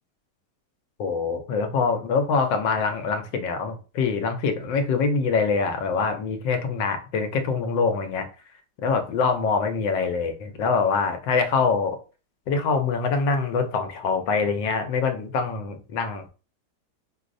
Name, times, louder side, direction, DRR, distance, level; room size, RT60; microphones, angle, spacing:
voice 1, 1.0-8.3 8.8-12.0 12.5-16.3, left 4 dB, 90° left, 6 dB, 1.4 m, -24 dB
4.9 x 2.0 x 2.6 m, 0.34 s
omnidirectional pair, 1.9 m